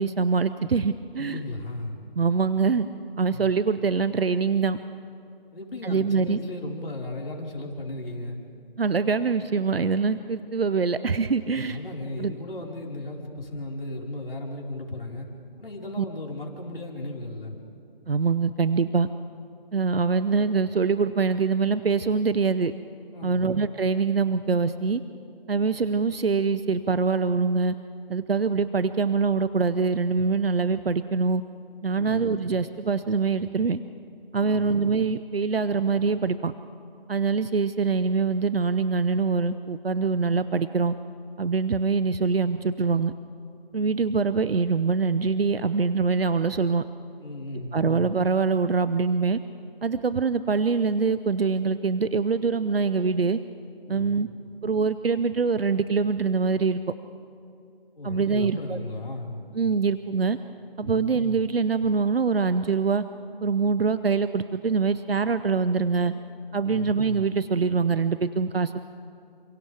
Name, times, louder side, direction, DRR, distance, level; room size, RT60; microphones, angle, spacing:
voice 1, 0.0-1.4 2.2-2.9 3.2-4.8 5.8-6.4 8.8-11.8 12.2-12.3 16.0-16.1 18.1-19.1 19.7-22.7 23.2-25.0 25.5-27.7 28.1-31.4 31.8-33.8 34.3-36.5 37.1-40.9 41.4-43.1 43.7-46.8 47.7-49.4 49.8-53.4 53.9-54.3 54.6-56.8 58.0-58.8 59.6-60.4 60.8-63.0 63.4-66.1 66.5-68.7, right 5 dB, 75° right, 13 dB, 0.8 m, -24 dB
voice 2, 1.2-2.0 3.3-3.5 5.5-8.4 11.7-15.3 15.6-17.6 23.1-23.5 31.9-32.3 34.4-34.8 47.2-47.9 53.9-54.2 57.9-59.5 60.8-61.1 66.6-66.9, left 2 dB, 70° left, -2 dB, 5.0 m, -36 dB
29.0 x 27.5 x 3.5 m, 2.7 s
figure-of-eight pair, 165°, 30 cm